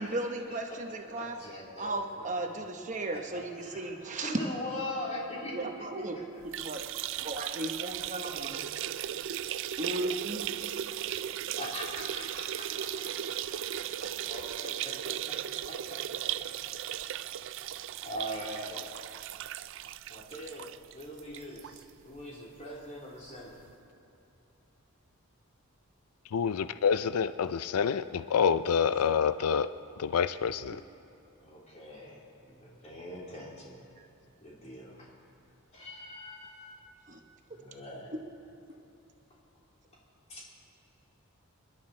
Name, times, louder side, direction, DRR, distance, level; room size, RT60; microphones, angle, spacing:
voice 1, 0.0-1.4 1.8-4.4 5.5-6.9 7.2-8.6 9.8-10.4 11.3-11.4 12.7-12.8 19.2-19.3 34.0-34.1 37.1-37.2 38.1-38.2, right 2 dB, 35° right, 4 dB, 0.9 m, -36 dB
voice 2, 1.2-2.3 3.1-3.9 4.2-6.2 8.3-8.6 11.6-12.9 13.3-13.4 13.8-14.9 15.7-16.0 16.6-16.7 17.1-17.3 18.0-18.9 20.1-23.6 28.7-28.9 31.4-33.8 34.4-35.1 35.7-36.8 37.5-38.1 40.3-40.5, left 1 dB, 30° left, -5 dB, 3.5 m, -42 dB
sound 1, 6.4-21.8 22.2-22.3 22.6-22.7 23.7-23.8, right 11 dB, 60° right, 0.3 m, -37 dB
voice 3, 26.3-29.7 30.0-30.8, left 7 dB, 90° left, 13 dB, 0.4 m, -27 dB
26.5 x 11.5 x 4.3 m, 2.9 s
head